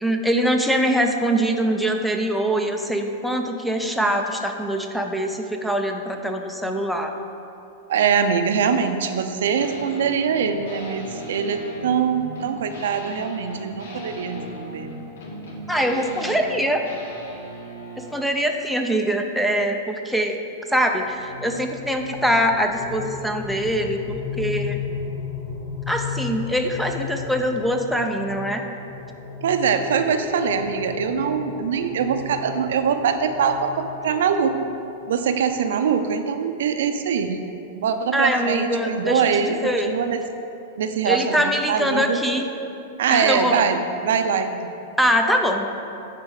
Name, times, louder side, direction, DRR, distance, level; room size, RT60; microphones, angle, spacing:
voice 1, 0.0-7.1 15.7-16.8 18.1-20.4 20.7-24.8 25.9-28.6 38.1-39.9 41.1-42.5 43.1-43.6 45.0-45.7, equal, ahead, 4 dB, 0.5 m, -23 dB
voice 2, 7.9-14.9 29.4-34.6 35.1-37.4 37.7-40.2 40.8-42.2 43.0-44.7, right 6 dB, 80° right, 8 dB, 0.5 m, -23 dB
sound 1, 9.5-18.2, equal, 90° left, 1.6 m, -37 dB
sound 2, 20.8-35.6, left 6 dB, 25° left, 1.2 m, -35 dB
9.7 x 4.1 x 4.9 m, 2.8 s
supercardioid pair, 150°, 0 cm